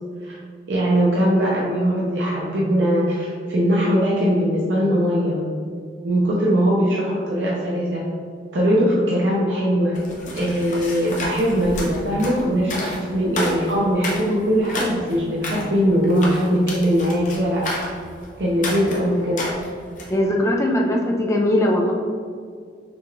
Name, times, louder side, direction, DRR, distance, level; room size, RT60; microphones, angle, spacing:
voice 1, 0.7-5.4 6.0-8.0 8.5-9.9 10.3-17.6 18.4-19.4, equal, 80° right, -5 dB, 0.7 m, -20 dB
sound 1, 9.9-20.2, left 1 dB, 45° left, 0.8 m, -31 dB
voice 2, 20.1-21.9, left 1 dB, 15° left, -1 dB, 0.5 m, -20 dB
6.1 x 2.4 x 3.1 m, 2.2 s
head